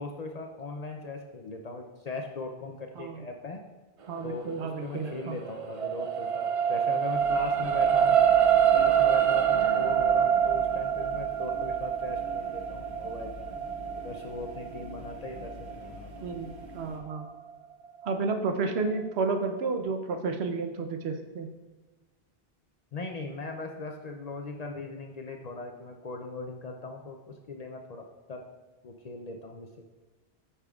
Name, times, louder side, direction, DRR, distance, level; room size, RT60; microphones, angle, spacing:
voice 1, 0.0-3.6 4.2-8.2 8.7-13.5 14.0-16.3 22.9-28.4 28.8-29.9, left 3 dB, 50° left, 3 dB, 0.5 m, -39 dB
voice 2, 4.1-5.4 16.2-17.3 18.0-21.5, right 4 dB, 85° right, 5 dB, 0.9 m, -31 dB
sound 1, 5.0-17.5 18.0-18.1, right 9 dB, 50° right, 0.4 m, -26 dB
sound 2, 7.1-17.0, left 2 dB, 30° right, 1.0 m, -46 dB
8.3 x 5.7 x 2.4 m, 1.2 s
omnidirectional pair, 1.1 m